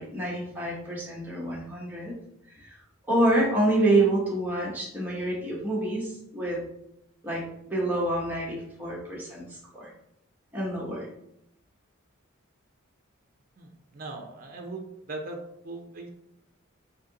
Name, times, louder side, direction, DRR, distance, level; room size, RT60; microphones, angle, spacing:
voice 1, 0.0-2.1 2.6-2.8 3.1-6.6 7.2-9.9 10.5-11.1, right 1 dB, 10° right, -5 dB, 0.9 m, -27 dB
voice 2, 13.6-15.4 15.6-16.1, right 2 dB, 40° right, 3 dB, 0.6 m, -39 dB
4.1 x 2.7 x 3.8 m, 0.78 s
head